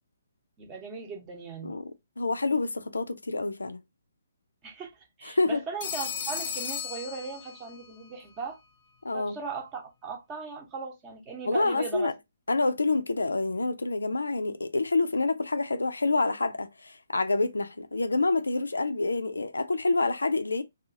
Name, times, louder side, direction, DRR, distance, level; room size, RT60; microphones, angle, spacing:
voice 1, 0.6-1.7 4.6-4.9 5.2-8.6 9.1-12.1, right 5 dB, 20° right, 0.8 m, -38 dB
voice 2, 2.2-3.8 5.2-5.6 9.0-9.4 11.5-12.1 12.5-20.6, left 3 dB, 70° left, 0.4 m, -27 dB
Telephone, 5.8-7.9, left 7 dB, 30° left, 0.6 m, -35 dB
2.8 x 2.3 x 2.6 m
figure-of-eight pair, 130°, 0 cm